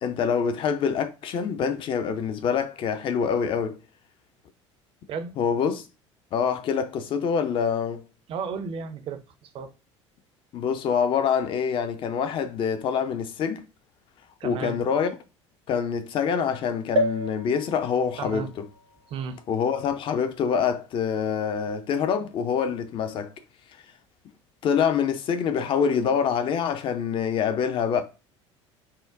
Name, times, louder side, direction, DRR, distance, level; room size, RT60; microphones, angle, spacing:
voice 1, 0.0-3.8 5.4-5.8 6.3-8.0 10.5-13.6 14.4-15.2 15.7-18.7 19.5-23.3 24.6-28.0, left 7 dB, 35° left, 0.5 m, -25 dB
voice 2, 8.3-9.7 14.4-14.8 18.2-18.5 19.1-19.4, right 6 dB, 35° right, 0.5 m, -34 dB
sound 1, 17.0-20.6 21.2-21.3 21.5-21.6, equal, 80° right, 0.9 m, -31 dB
5.5 x 2.1 x 2.4 m
figure-of-eight pair, 65°, 16 cm